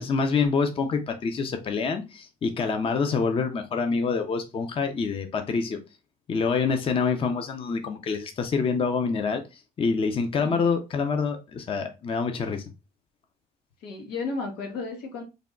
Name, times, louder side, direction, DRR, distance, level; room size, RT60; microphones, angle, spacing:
voice 1, 0.0-5.8 6.3-9.4 9.8-12.6, left 5 dB, 35° left, 0.5 m, -26 dB
voice 2, 13.8-15.2, left 4 dB, 85° left, 1.2 m, -33 dB
3.4 x 2.2 x 3.7 m
cardioid pair, 110°, 17 cm